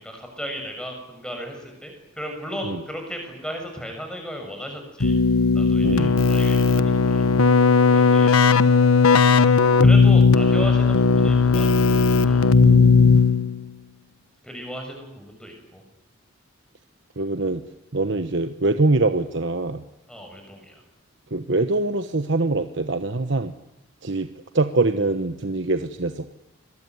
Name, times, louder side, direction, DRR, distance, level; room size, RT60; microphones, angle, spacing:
voice 1, 0.0-5.1 5.5-7.3 7.9-8.4 9.8-11.9 12.2-12.5 14.4-15.8 20.1-20.8, equal, 5° left, 3 dB, 6.9 m, -35 dB
Keyboard (musical), 5.0-13.7, left 4 dB, 85° left, 1.1 m, -16 dB
voice 2, 5.8-6.1 12.6-13.2 17.2-17.6 17.9-19.8 21.3-23.5 24.0-24.3 24.5-26.3, right 2 dB, 55° right, 8 dB, 1.1 m, -24 dB
26.5 x 21.5 x 9.6 m, 0.90 s
head